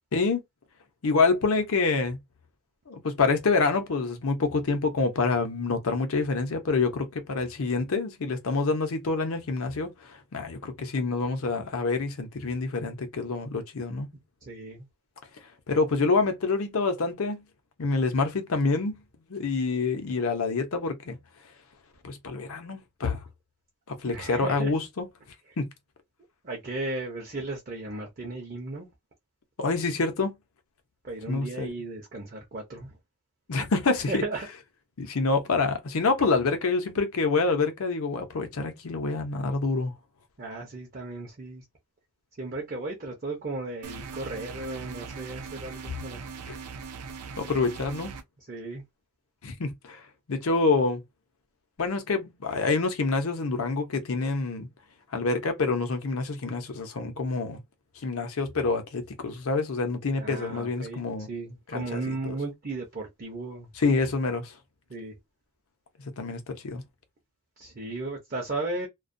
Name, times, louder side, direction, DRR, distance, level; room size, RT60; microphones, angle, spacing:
voice 1, 0.1-0.4 1.0-2.2 2.9-14.1 15.7-17.4 17.8-19.0 19.3-21.2 22.0-23.2 23.9-25.1 25.6-25.7 29.6-30.3 31.3-31.7 33.5-34.2 35.0-39.9 46.5-46.6 47.4-48.1 49.4-50.0 50.3-51.0 51.8-54.7 55.1-57.6 58.0-61.3 61.7-62.3 63.8-64.5 66.2-66.8, left 3 dB, 70° left, 0.7 m, -27 dB
voice 2, 14.4-14.8 24.0-24.7 26.4-28.9 31.0-33.0 34.1-34.5 40.4-41.6 42.4-46.2 48.5-48.8 60.1-63.7 64.9-65.2 67.6-68.9, right 2 dB, 40° right, 0.6 m, -35 dB
sound 1, 43.8-48.2, right 5 dB, 85° right, 0.5 m, -40 dB
2.2 x 2.2 x 2.5 m
head